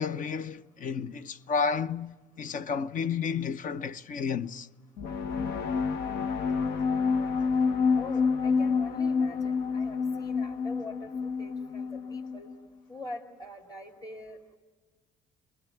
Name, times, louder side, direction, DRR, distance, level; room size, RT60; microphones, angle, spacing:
voice 1, 0.0-4.7, left 6 dB, 50° left, 0.8 m, -31 dB
sound 1, 5.0-12.5, left 5 dB, 85° left, 1.1 m, -28 dB
voice 2, 8.0-12.5 12.9-14.4, left 2 dB, 25° left, 2.7 m, -44 dB
27.0 x 22.0 x 9.2 m
cardioid pair, 110°, 17 cm